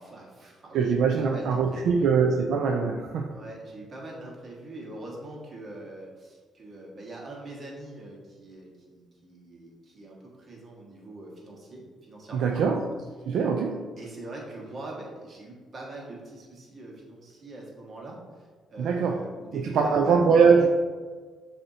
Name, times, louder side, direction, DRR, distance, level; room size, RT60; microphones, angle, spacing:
voice 1, 0.0-2.1 3.3-12.8 14.0-20.2, right 2 dB, 40° right, -2 dB, 1.3 m, -43 dB
voice 2, 0.7-3.3 12.3-12.8 13.3-13.9 18.8-19.2 19.5-20.7, right 5 dB, 75° right, 2 dB, 0.3 m, -22 dB
6.6 x 2.7 x 2.7 m, 1.5 s
cardioid pair, 90°, 0 cm